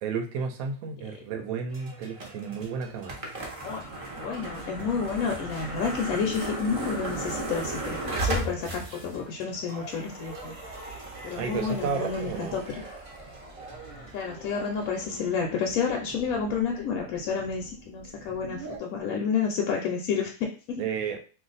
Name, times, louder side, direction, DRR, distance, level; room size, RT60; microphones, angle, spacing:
voice 1, 0.0-3.3 4.8-4.9 8.1-8.2 11.4-12.6 13.9-14.1 20.8-21.2, right 6 dB, 80° right, 4 dB, 1.0 m, -32 dB
sound 1, 1.7-18.8, right 2 dB, 35° right, 0.5 m, -37 dB
voice 2, 4.2-10.6 11.2-12.8 14.1-20.8, left 6 dB, 80° left, 1 dB, 1.0 m, -30 dB
2.4 x 2.4 x 3.9 m, 0.36 s
omnidirectional pair, 1.5 m